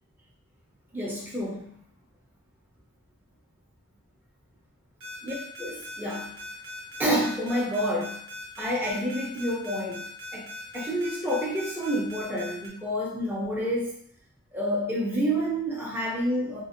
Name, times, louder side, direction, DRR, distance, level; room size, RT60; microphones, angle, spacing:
voice 1, 0.9-1.7 5.2-6.3 7.0-8.2 8.6-10.0 10.3-13.9 14.5-16.6, equal, 10° right, -4 dB, 0.4 m, -29 dB
sound 1, 5.0-12.7, left 2 dB, 70° right, 0.7 m, -40 dB
2.5 x 2.1 x 2.4 m, 0.64 s
head